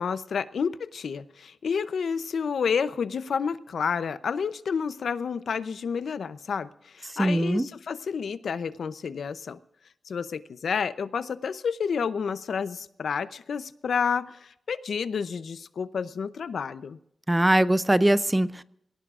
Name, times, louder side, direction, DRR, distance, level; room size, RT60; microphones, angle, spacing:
voice 1, 0.0-9.6 10.1-17.0, left 6 dB, 75° left, 13 dB, 0.6 m, -30 dB
voice 2, 7.1-7.7 17.3-18.6, right 1 dB, 10° right, 15 dB, 0.4 m, -22 dB
23.0 x 18.0 x 2.5 m, 0.77 s
wide cardioid pair, 140°, 0 cm